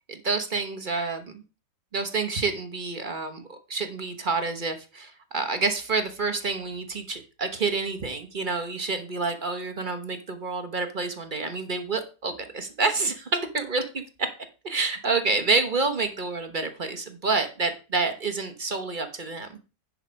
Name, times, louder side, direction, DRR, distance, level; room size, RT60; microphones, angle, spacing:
voice 1, 0.1-1.4 1.9-14.3 14.6-19.6, right 4 dB, 35° right, 7 dB, 0.9 m, -28 dB
10.0 x 4.9 x 5.2 m, 0.32 s
omnidirectional pair, 2.0 m